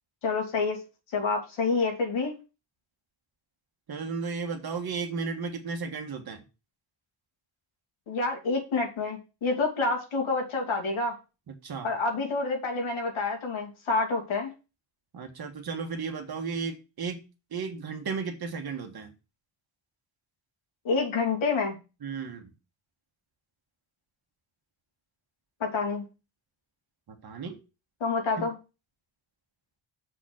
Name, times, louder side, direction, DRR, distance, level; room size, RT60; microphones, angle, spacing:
voice 1, 0.2-0.8 1.1-2.3 8.1-11.2 11.8-14.5 20.8-21.8 25.6-26.0 28.0-28.5, left 3 dB, 75° left, 2 dB, 2.7 m, -28 dB
voice 2, 3.9-6.4 11.5-11.9 15.1-17.2 17.5-19.1 22.0-22.5 27.1-27.6 28.4-28.5, right 5 dB, 50° right, 4 dB, 1.6 m, -34 dB
7.2 x 4.4 x 6.4 m, 0.30 s
wide cardioid pair, 155°, 48 cm